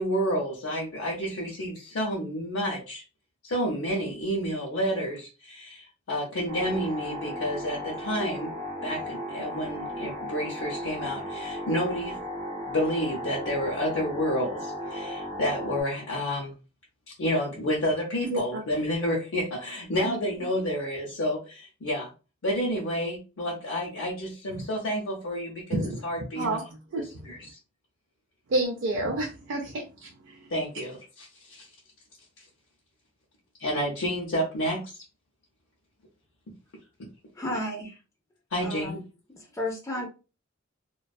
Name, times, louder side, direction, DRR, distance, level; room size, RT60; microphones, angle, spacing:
voice 1, 0.0-3.0 3.4-8.5 8.8-12.2 12.6-16.5 17.2-22.1 22.4-26.6 27.2-27.6 30.5-31.7 33.6-34.9 36.5-36.6 38.5-39.0, equal, 75° left, -2 dB, 0.6 m, -30 dB
sound 1, 6.5-15.8, equal, 45° right, 0.8 m, -35 dB
voice 2, 18.2-18.6 20.0-20.2 25.7-26.6 26.9-27.3 28.5-30.5, right 2 dB, 65° right, 0 dB, 0.4 m, -30 dB
voice 3, 37.3-38.0 38.6-39.0 39.3-40.1, left 1 dB, 15° left, -2 dB, 0.4 m, -33 dB
2.5 x 2.2 x 2.2 m, 0.32 s
head